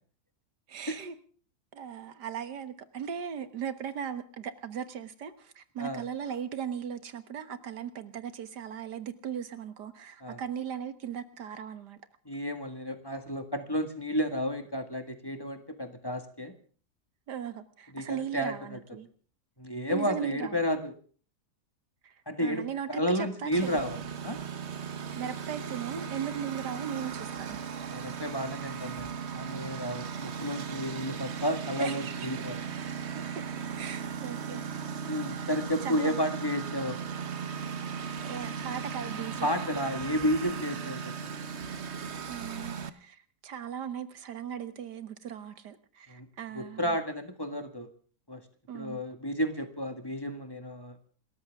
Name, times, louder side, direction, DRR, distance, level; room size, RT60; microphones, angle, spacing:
voice 1, 0.7-1.2 1.7-12.0 17.3-19.1 19.9-20.6 22.0-22.1 22.4-23.8 25.1-27.6 31.8-31.9 33.2-33.5 33.8-34.9 35.4-35.5 35.8-36.2 38.2-39.5 42.3-47.0 48.7-49.0, right 8 dB, 85° right, 1.9 m, -38 dB
voice 2, 12.3-16.5 17.9-18.8 19.6-20.9 22.3-24.4 27.9-32.6 35.1-37.0 39.4-41.1 46.1-46.3 46.5-47.9 48.3-48.4 48.7-51.0, equal, 15° left, 1.8 m, -32 dB
Engine, 23.5-42.9, right 6 dB, 45° right, 1.2 m, -37 dB
28.0 x 14.0 x 3.6 m
omnidirectional pair, 1.7 m